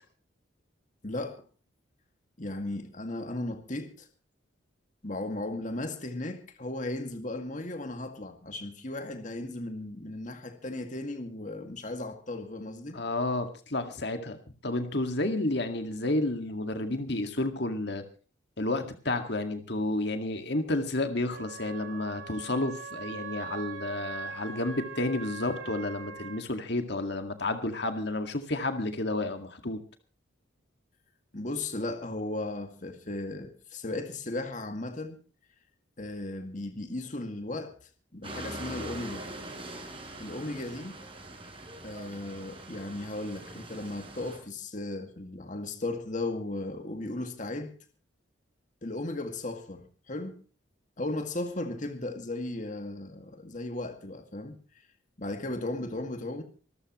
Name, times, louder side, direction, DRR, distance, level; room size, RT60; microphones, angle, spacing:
voice 1, 1.0-1.4 2.4-4.1 5.0-13.0 31.3-35.2 36.0-39.3 40.2-41.0 41.8-47.7 48.8-50.4 51.0-54.9 55.2-56.4, left 2 dB, 40° left, 2.1 m, -36 dB
voice 2, 12.9-14.4 14.6-18.0 18.6-29.8, left 2 dB, 55° left, 2.0 m, -31 dB
Wind instrument woodwind instrument, 21.3-26.4, right 5 dB, 85° right, 5.7 m, -41 dB
sound 1, 38.2-44.4, right 1 dB, 25° right, 6.7 m, -43 dB
25.5 x 13.5 x 3.1 m
head